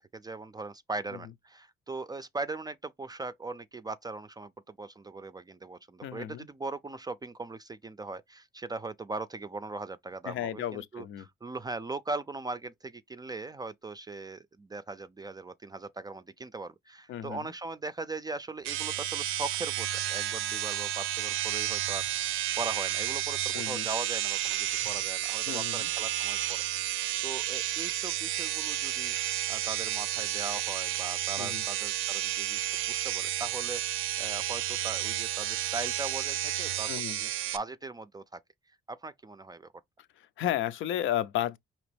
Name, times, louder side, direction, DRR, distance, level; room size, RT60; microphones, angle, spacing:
voice 1, 0.0-11.1 11.4-29.2 29.5-38.4 38.9-39.7, right 3 dB, 20° right, 0.4 m, -40 dB
voice 2, 6.0-6.5 10.2-11.3 17.1-17.5 23.5-23.9 25.5-25.9 31.4-31.6 36.9-37.2 40.2-41.6, left 11 dB, 75° left, 0.6 m, -33 dB
sound 1, 18.6-37.6, right 13 dB, 90° right, 0.5 m, -31 dB
5.0 x 2.9 x 3.3 m
cardioid pair, 90°, 20 cm